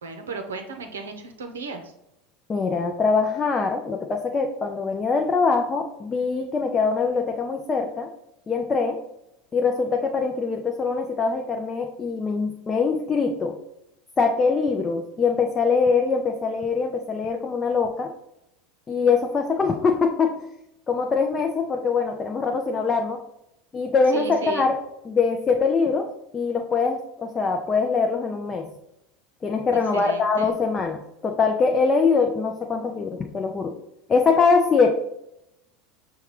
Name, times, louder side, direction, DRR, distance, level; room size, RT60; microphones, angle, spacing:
voice 1, 0.0-1.9 24.1-24.7 29.9-30.6, right 4 dB, 85° right, 5 dB, 0.6 m, -35 dB
voice 2, 2.5-8.1 8.5-9.0 9.5-13.6 14.2-18.1 18.9-20.4 20.9-23.2 23.7-28.7 29.4-33.7 34.1-34.9, left 4 dB, 25° left, 3 dB, 0.4 m, -23 dB
5.6 x 2.3 x 3.1 m, 0.84 s
hypercardioid pair, 85°, 0 cm